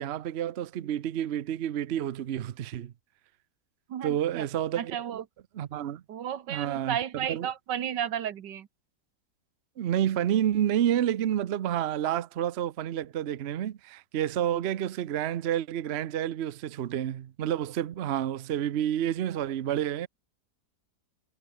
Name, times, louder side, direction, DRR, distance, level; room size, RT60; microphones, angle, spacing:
voice 1, 0.0-2.9 4.0-4.9 5.6-6.0 6.5-7.0 7.3-7.5 9.8-20.1, right 11 dB, 55° right, 0.7 m, -29 dB
voice 2, 3.9-4.5 4.8-5.2 6.1-8.7, right 9 dB, 85° right, 1.8 m, -33 dB
omnidirectional pair, 1.8 m